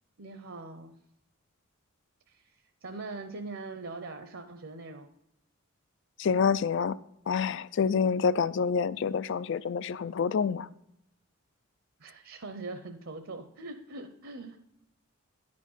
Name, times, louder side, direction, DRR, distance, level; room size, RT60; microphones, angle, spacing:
voice 1, 0.2-1.0 2.3-2.5 2.8-5.1 12.0-14.6, right 3 dB, 65° right, 0.7 m, -42 dB
voice 2, 6.2-7.0 7.3-10.7, left 6 dB, 55° left, 0.3 m, -27 dB
10.5 x 5.2 x 5.5 m
head